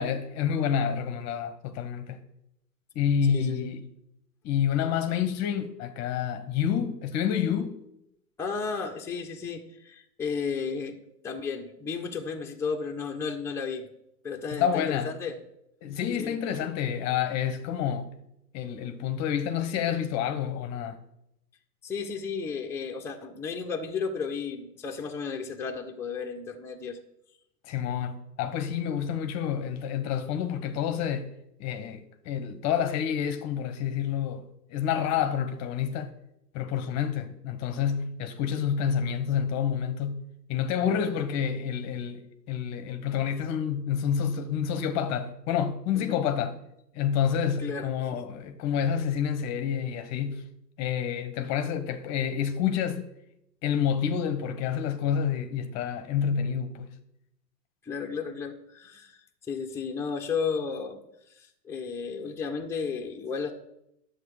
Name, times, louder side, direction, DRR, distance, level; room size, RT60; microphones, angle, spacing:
voice 1, 0.0-2.2 2.9-3.8 4.4-7.8 14.5-15.1 15.8-18.1 18.5-21.0 27.7-31.3 31.6-34.4 34.7-36.1 36.5-40.2 40.5-46.5 46.9-50.4 50.8-53.1 53.6-56.9, left 8 dB, 30° left, 1.0 m, -28 dB
voice 2, 3.3-3.7 8.4-11.0 11.2-13.9 14.2-15.4 16.2-16.4 21.8-27.0 46.0-46.2 47.6-48.2 57.8-59.2 59.5-61.0 61.3-63.5, left 5 dB, 5° left, 0.9 m, -33 dB
10.5 x 7.9 x 4.9 m
hypercardioid pair, 115°, 50 cm